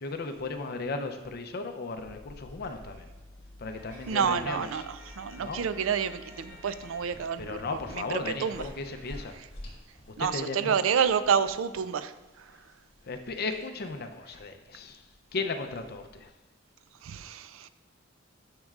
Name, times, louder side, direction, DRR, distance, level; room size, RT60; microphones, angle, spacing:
voice 1, 0.0-3.1 3.6-4.9 5.4-5.7 7.4-9.4 10.2-10.8 13.0-15.0 15.3-16.3, left 3 dB, 50° left, 7 dB, 0.6 m, -36 dB
sound 1, 2.0-7.0, left 2 dB, 75° left, 1.0 m, -52 dB
sound 2, 2.0-16.3, left 1 dB, 30° left, 2.7 m, -51 dB
sound 3, 3.7-9.3, left 1 dB, 15° right, 2.5 m, -53 dB
voice 2, 4.1-7.6 7.9-8.6 10.2-12.6 17.0-17.7, right 7 dB, 80° right, 13 dB, 0.4 m, -29 dB
10.5 x 6.5 x 2.4 m, 1.1 s
head